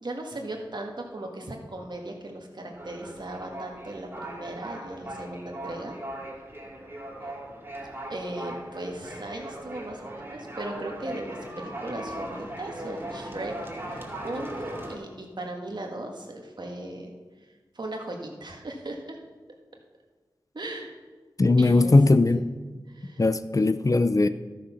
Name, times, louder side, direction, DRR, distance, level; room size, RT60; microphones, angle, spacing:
voice 1, 0.0-6.0 8.1-13.5 13.9-17.1 17.8-19.2 20.5-20.9 21.6-22.0 22.3-22.4 22.9-23.2, right 1 dB, 60° right, 2 dB, 1.8 m, -37 dB
sound 1, 2.7-15.0, right 1 dB, 30° right, 2.5 m, -39 dB
voice 2, 21.4-22.4 23.2-24.3, left 2 dB, 40° left, 12 dB, 0.5 m, -19 dB
12.5 x 6.6 x 5.7 m, 1.4 s
cardioid pair, 45°, 8 cm